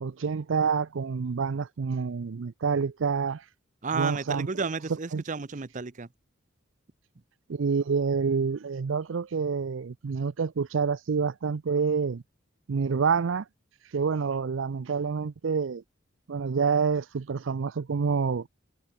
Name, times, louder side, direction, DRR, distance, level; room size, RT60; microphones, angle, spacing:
voice 1, 0.0-3.4 3.9-4.5 5.1-5.2 7.5-12.2 12.7-13.4 13.9-15.8 16.3-18.5, right 5 dB, 75° right, 0.5 m, -27 dB
voice 2, 3.8-6.1, right 4 dB, 40° right, 0.7 m, -32 dB
head